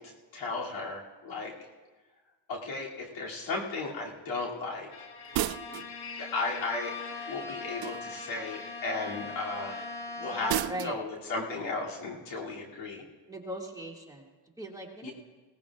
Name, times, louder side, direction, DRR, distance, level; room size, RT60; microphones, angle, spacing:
voice 1, 0.0-1.5 2.5-4.9 6.2-7.0 7.3-9.7 10.2-13.0 15.0-15.1, left 3 dB, 80° left, -3 dB, 2.8 m, -35 dB
Bowed string instrument, 4.9-11.0, left 3 dB, 55° left, 1.7 m, -41 dB
sound 1, 5.3-5.9 7.8-8.3 10.5-11.0, right 13 dB, 50° right, 0.5 m, -32 dB
voice 2, 10.2-11.0 13.3-14.3 14.6-15.1, equal, 10° right, -1 dB, 2.2 m, -40 dB
18.5 x 17.5 x 2.4 m, 1.3 s
cardioid pair, 80°, 46 cm